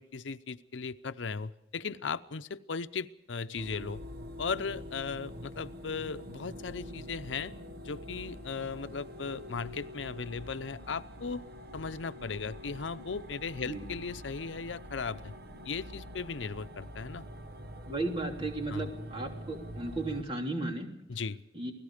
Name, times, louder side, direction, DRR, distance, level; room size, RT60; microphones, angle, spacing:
voice 1, 0.0-4.0 4.4-7.5 7.8-11.4 11.7-15.3 15.6-17.2 18.7-18.9 21.1-21.4, left 5 dB, 85° left, 13 dB, 0.7 m, -37 dB
sound 1, 3.6-20.2, equal, 55° right, 1.4 m, -45 dB
voice 2, 17.9-20.9 21.5-21.7, right 2 dB, 30° right, 2 dB, 3.4 m, -35 dB
28.5 x 18.5 x 5.0 m, 0.83 s
head